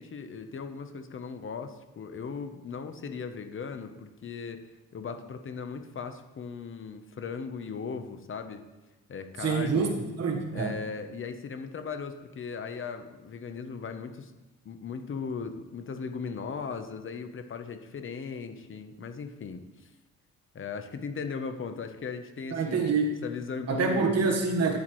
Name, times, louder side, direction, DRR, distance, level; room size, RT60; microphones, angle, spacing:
voice 1, 0.0-4.6 4.9-8.6 9.1-9.9 10.5-14.3 14.6-19.6 20.5-24.1, left 5 dB, 45° left, 7 dB, 0.9 m, -38 dB
voice 2, 9.4-10.7 22.5-23.2 23.7-24.8, right 4 dB, 55° right, 4 dB, 1.4 m, -26 dB
9.4 x 8.2 x 3.1 m, 1.1 s
cardioid pair, 90°, 30 cm